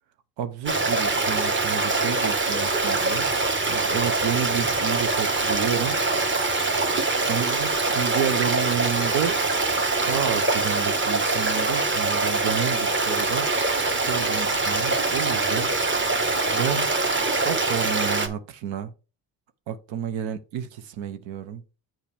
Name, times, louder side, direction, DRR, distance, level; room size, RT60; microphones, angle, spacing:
voice 1, 0.4-3.3 3.7-6.0 7.3-9.4 10.0-13.5 14.0-15.7 16.5-16.9 17.4-18.9 19.7-21.6, right 8 dB, 90° right, 0.9 m, -30 dB
Stream, 0.7-18.3, right 3 dB, 25° right, 1.4 m, -24 dB
7.4 x 5.8 x 3.4 m
cardioid pair, 95°, 45 cm